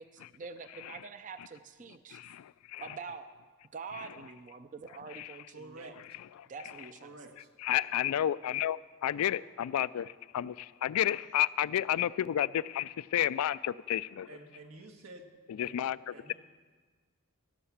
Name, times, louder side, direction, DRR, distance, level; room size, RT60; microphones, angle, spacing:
voice 1, 0.0-2.2 2.8-3.3 3.7-6.0 6.5-7.1, right 5 dB, 35° right, 10 dB, 0.4 m, -45 dB
voice 2, 2.1-2.8 5.1-5.3 7.6-14.3 15.6-16.3, left 11 dB, 85° left, 18 dB, 0.3 m, -31 dB
voice 3, 5.5-5.9 7.0-7.5 14.3-15.3 15.6-16.3, right 2 dB, 80° right, 3 dB, 1.5 m, -50 dB
17.0 x 5.8 x 7.2 m, 1.5 s
head